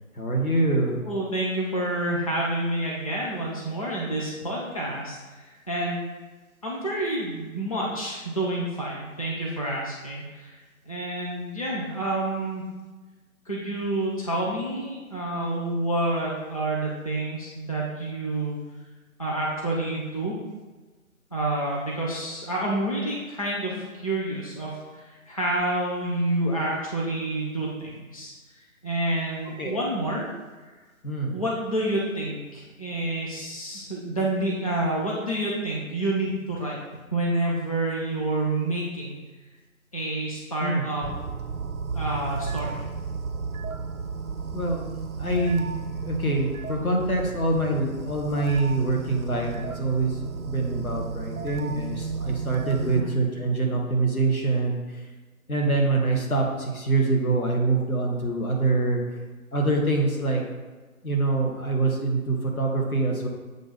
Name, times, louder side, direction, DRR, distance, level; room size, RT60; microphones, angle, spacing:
voice 1, 0.2-0.9 29.6-29.8 31.0-31.3 40.6-40.8 44.5-55.0 55.5-59.2 59.5-60.4 61.0-63.3, right 2 dB, 80° left, 0 dB, 1.7 m, -25 dB
voice 2, 1.1-6.0 6.6-10.6 10.9-12.6 13.5-18.6 19.2-20.3 21.3-28.3 28.8-30.3 30.6-30.7 31.3-36.8 37.1-39.2 39.9-41.0 41.9-42.7 52.9-53.2, right 1 dB, 25° left, -4 dB, 0.6 m, -28 dB
sound 1, 41.0-53.1, right 5 dB, 80° right, 0.6 m, -33 dB
7.5 x 2.7 x 5.4 m, 1.3 s
figure-of-eight pair, 155°, 42 cm